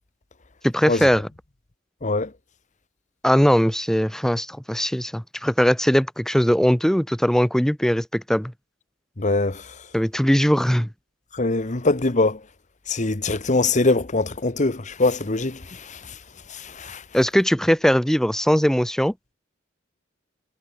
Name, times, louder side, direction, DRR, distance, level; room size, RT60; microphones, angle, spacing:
voice 1, 0.6-1.3 3.2-8.5 9.9-10.9 17.1-19.1, equal, 5° left, 0.9 m, -20 dB
voice 2, 9.2-9.6 11.4-12.4 12.9-15.6 16.8-17.0, left 2 dB, 40° left, 1.2 m, -22 dB
head